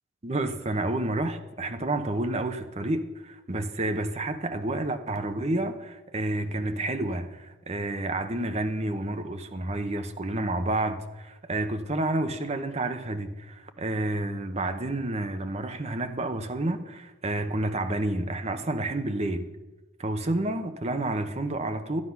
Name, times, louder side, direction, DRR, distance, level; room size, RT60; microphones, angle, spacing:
voice 1, 0.2-19.5 20.0-22.0, right 2 dB, 30° right, 0.8 m, -30 dB
13.0 x 9.9 x 5.8 m
head